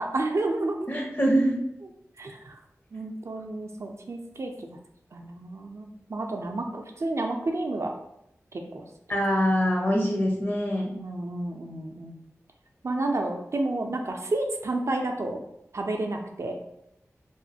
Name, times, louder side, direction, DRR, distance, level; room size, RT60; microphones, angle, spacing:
voice 1, 0.1-0.9 1.8-1.9 2.2-2.6 2.9-4.8 5.1-7.9 8.5-8.8 10.9-12.2 12.8-15.4 15.7-16.5, right 2 dB, 60° right, 3 dB, 0.4 m, -30 dB
voice 2, 0.9-1.6 9.1-11.0, equal, 40° left, -1 dB, 0.9 m, -24 dB
3.0 x 2.4 x 2.7 m, 0.80 s
cardioid pair, 45°, 6 cm